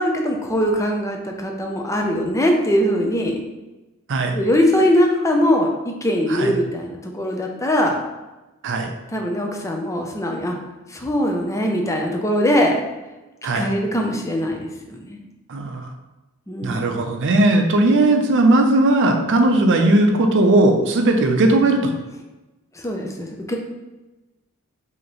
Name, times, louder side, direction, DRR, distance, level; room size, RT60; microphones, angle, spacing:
voice 1, 0.0-3.4 4.3-8.0 9.1-10.6 10.9-12.8 13.6-15.2 16.5-17.1 22.8-23.6, equal, 15° left, 2 dB, 0.5 m, -21 dB
voice 2, 15.5-15.9 16.6-21.9, right 2 dB, 60° right, 4 dB, 0.6 m, -17 dB
4.9 x 2.9 x 3.0 m, 1.1 s
head